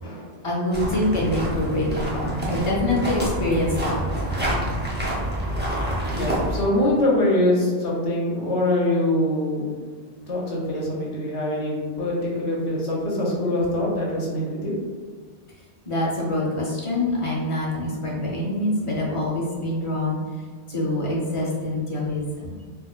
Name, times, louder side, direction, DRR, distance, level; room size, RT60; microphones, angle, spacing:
voice 1, 0.4-4.0 10.8-10.9 15.9-20.2 20.7-22.6, left 1 dB, 30° left, -4 dB, 0.7 m, -25 dB
sound 1, 0.7-6.6, equal, 15° right, 0.5 m, -27 dB
voice 2, 6.1-9.7 10.3-14.7, left 1 dB, 75° left, -3 dB, 1.2 m, -24 dB
4.2 x 2.5 x 2.4 m, 1.5 s
omnidirectional pair, 1.2 m